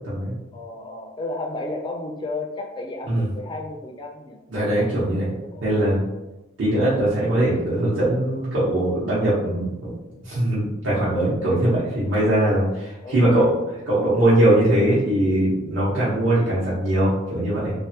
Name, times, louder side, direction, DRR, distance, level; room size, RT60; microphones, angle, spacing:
voice 1, 0.0-0.3 3.1-3.3 4.5-5.3 5.6-6.0 6.6-9.9 10.2-13.5 13.9-17.7, right 1 dB, 70° right, -10 dB, 0.8 m, -21 dB
voice 2, 0.5-4.4 5.4-5.9 13.0-13.5, left 2 dB, 25° left, 1 dB, 0.3 m, -33 dB
3.3 x 2.1 x 2.7 m, 0.99 s
head